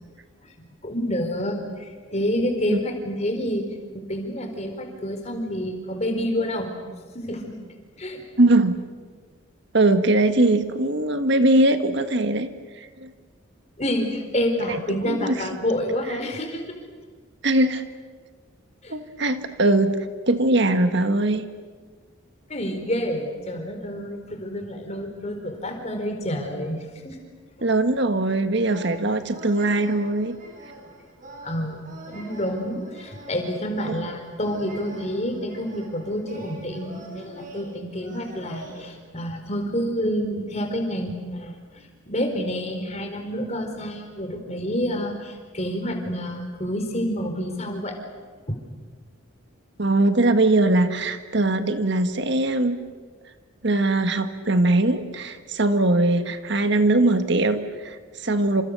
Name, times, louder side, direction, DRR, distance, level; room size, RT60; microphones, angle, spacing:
voice 1, 0.6-3.6 4.1-6.7 7.1-7.6 8.0-8.2 13.8-16.6 18.8-18.9 22.5-27.2 31.4-31.8 32.1-48.0 48.5-48.6, equal, 30° left, 5 dB, 4.5 m, -28 dB
voice 2, 8.4-8.8 9.7-12.5 12.8-13.1 14.7-14.8 15.0-15.5 16.1-16.2 17.4-17.8 18.9-21.5 27.6-30.3 33.9-34.0 49.8-52.8 53.6-58.6, right 2 dB, 55° right, 9 dB, 1.6 m, -21 dB
sound 1, 28.6-38.8, right 2 dB, 40° right, 6.5 m, -43 dB
29.0 x 27.5 x 6.9 m, 1.5 s
head